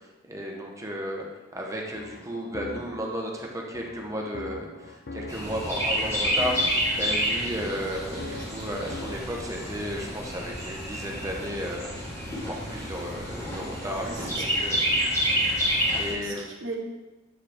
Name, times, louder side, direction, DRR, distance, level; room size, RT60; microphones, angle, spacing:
voice 1, 0.2-1.3 1.5-6.6 6.9-11.9 12.4-14.8 15.5-16.4, equal, 15° right, 0 dB, 0.8 m, -34 dB
sound 1, 1.7-9.4, left 2 dB, 55° left, 0.5 m, -42 dB
Chirp tweet, 5.3-16.1, equal, 15° left, 1.6 m, -29 dB
voice 2, 8.1-8.4 13.5-13.8 14.1-14.2 14.5-14.8 16.1-16.8, right 2 dB, 65° right, 0 dB, 1.1 m, -39 dB
7.6 x 4.4 x 3.4 m, 1.1 s
head